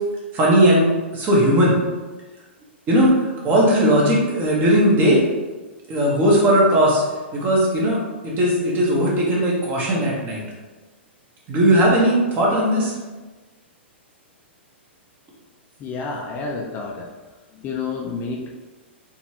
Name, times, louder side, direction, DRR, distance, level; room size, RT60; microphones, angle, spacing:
voice 1, 0.3-1.8 2.9-5.2 5.9-7.0 7.3-8.0 8.2-10.4 11.5-12.9, equal, 30° right, -4 dB, 1.3 m, -17 dB
voice 2, 15.8-17.1 17.5-18.5, left 4 dB, 30° left, 0 dB, 0.6 m, -29 dB
4.2 x 3.1 x 2.9 m, 1.2 s
hypercardioid pair, 120°, 6 cm